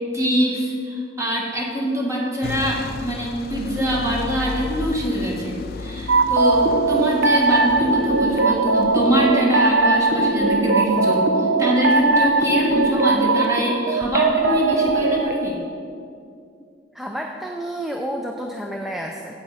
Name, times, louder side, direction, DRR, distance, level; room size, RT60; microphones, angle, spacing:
voice 1, 0.1-15.6, equal, 15° right, -3 dB, 1.6 m, -24 dB
sound 1, 2.4-9.3, left 3 dB, 55° left, 0.4 m, -34 dB
sound 2, 6.1-15.3, right 3 dB, 85° right, 0.6 m, -19 dB
voice 2, 16.9-19.4, right 1 dB, ahead, 1 dB, 0.4 m, -30 dB
8.5 x 7.8 x 4.9 m, 2.4 s
head